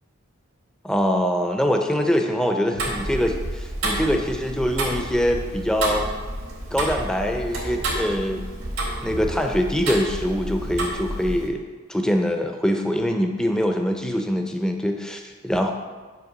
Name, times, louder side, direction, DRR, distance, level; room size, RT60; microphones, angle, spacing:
voice 1, 0.8-6.1 6.7-8.4 9.0-11.6 11.9-15.7, equal, 5° left, 3 dB, 0.4 m, -23 dB
sound 1, 2.7-5.2 5.4-5.5 5.8-6.1 6.7-7.2 7.5-8.1 9.0-9.4 10.2-10.3 10.5-11.2, right 1 dB, 50° right, 0.5 m, -39 dB
Tick-tock, 2.8-11.5, right 1 dB, 90° right, 1.7 m, -30 dB
6.4 x 3.3 x 6.0 m, 1.4 s
head